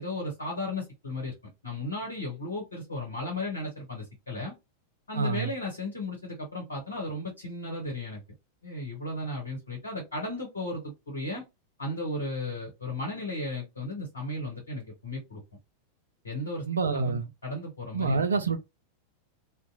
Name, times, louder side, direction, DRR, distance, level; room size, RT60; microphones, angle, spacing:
voice 1, 0.0-1.4 1.6-4.5 5.1-8.2 8.6-11.4 11.8-15.4 16.2-17.1 17.4-18.2, left 2 dB, 75° left, 0.9 m, -35 dB
voice 2, 5.1-5.5 16.7-17.2 17.9-18.6, right 4 dB, 75° right, 0.3 m, -27 dB
2.6 x 2.1 x 2.5 m
figure-of-eight pair, 90°, 0 cm